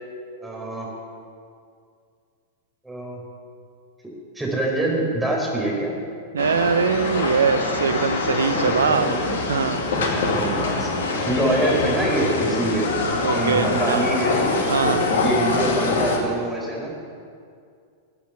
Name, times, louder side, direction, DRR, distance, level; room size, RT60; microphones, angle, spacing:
voice 1, 0.4-0.9 2.8-3.2 4.3-5.9 8.9-9.3 9.9-10.9 11.3-12.9 13.3-16.9, right 1 dB, 5° right, -3 dB, 4.6 m, -25 dB
voice 2, 6.3-9.1 9.5-9.8 13.2-14.1 14.7-15.0, right 6 dB, 75° right, 11 dB, 0.9 m, -22 dB
sound 1, 6.4-16.2, left 3 dB, 65° left, 2.2 m, -24 dB
14.0 x 8.5 x 9.0 m, 2.3 s
figure-of-eight pair, 95°, 0 cm